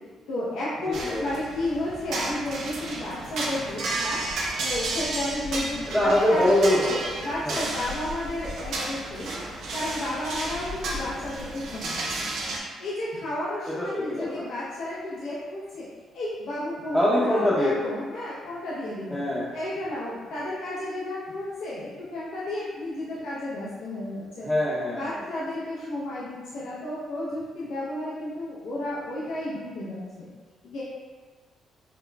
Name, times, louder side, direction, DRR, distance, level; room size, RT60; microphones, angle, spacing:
voice 1, 0.3-4.2 4.6-6.5 7.2-9.3 9.7-12.2 12.8-15.9 16.1-19.2 19.5-24.5 24.9-30.3 30.6-30.8, left 1 dB, 85° left, -10 dB, 0.8 m, -32 dB
voice 2, 0.9-1.3 5.9-7.7 13.7-14.4 16.9-17.8 19.1-19.5 24.4-25.2, left 1 dB, 5° left, -9 dB, 0.7 m, -24 dB
sound 1, 0.9-12.6, right 2 dB, 75° right, 0.7 m, -32 dB
5.9 x 2.0 x 2.3 m, 1.4 s
cardioid pair, 90°, 0 cm